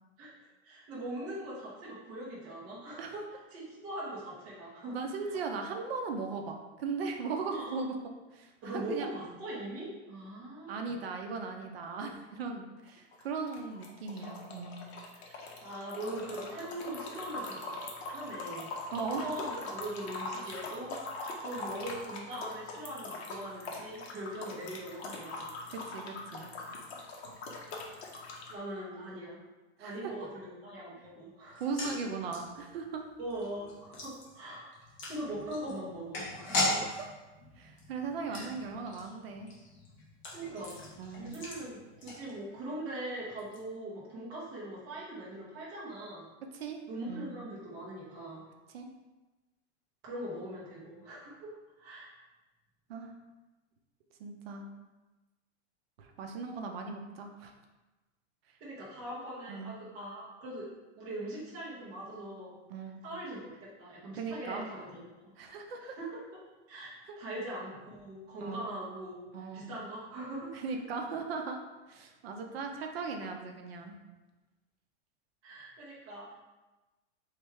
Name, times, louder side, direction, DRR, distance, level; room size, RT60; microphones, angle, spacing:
voice 1, 0.6-3.2 3.5-5.0 5.2-5.4 7.5-7.8 8.6-10.9 15.1-18.7 19.2-21.0 21.4-25.5 28.5-29.4 29.8-31.8 33.2-34.7 35.1-36.8 38.3-38.5 40.3-40.8 41.2-46.3 46.9-48.4 50.0-51.5 51.8-52.1 58.6-60.7 61.0-62.5 63.0-63.5 63.8-65.3 65.8-66.2 66.7-69.1 69.5-70.6 75.4-76.3, right 1 dB, 15° right, -7 dB, 0.4 m, -41 dB
voice 2, 4.9-7.9 8.3-9.1 10.7-14.8 18.9-19.5 24.6-24.7 25.7-26.5 29.8-30.1 31.6-33.0 36.6-37.1 37.6-39.5 41.0-41.3 46.5-46.8 47.1-47.3 48.7-48.9 52.9-53.1 54.2-54.7 56.0-57.5 59.5-59.7 62.7-63.0 64.1-64.7 65.4-66.0 67.0-67.2 68.4-68.7 69.3-69.7 70.5-71.6 71.9-74.0, right 4 dB, 55° right, 3 dB, 0.6 m, -38 dB
sound 1, 12.9-28.5, left 2 dB, 60° left, 0.9 m, -42 dB
sound 2, 31.5-42.7 43.0-43.1 43.4-43.6, left 1 dB, 20° left, 0.7 m, -39 dB
3.3 x 3.2 x 4.6 m, 1.1 s
supercardioid pair, 175°, 35 cm